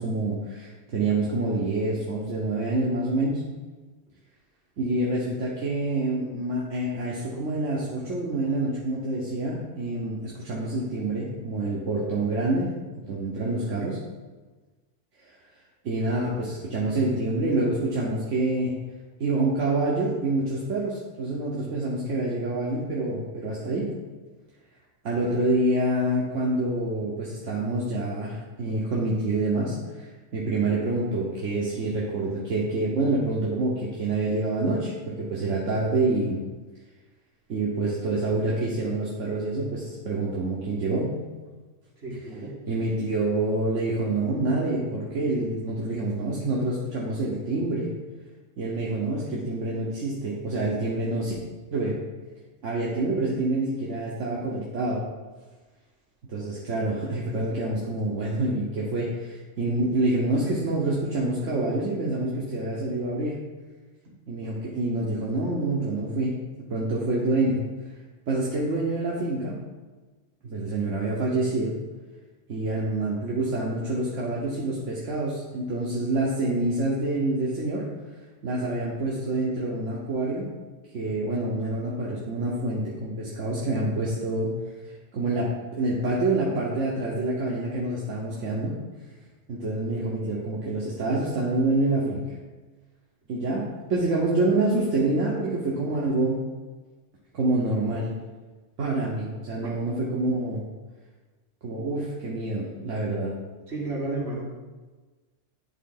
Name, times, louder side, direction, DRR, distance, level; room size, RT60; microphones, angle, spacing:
voice 1, 0.0-3.4 4.8-12.7 13.1-14.0 15.8-18.7 19.2-23.9 25.0-36.4 37.5-41.2 42.7-47.9 48.6-51.3 51.7-52.0 52.6-55.0 56.3-63.4 64.3-66.3 66.7-67.6 68.3-69.6 70.4-71.8 72.5-77.9 78.4-80.5 80.8-84.5 85.1-88.8 89.5-92.2 93.3-96.4 97.3-98.1 98.8-100.6 101.6-103.3, right 2 dB, 80° right, -5 dB, 1.3 m, -27 dB
voice 2, 42.0-42.5 99.6-99.7 103.7-104.4, right 2 dB, 60° right, -5 dB, 2.1 m, -32 dB
10.5 x 3.7 x 3.9 m, 1.3 s
omnidirectional pair, 1.2 m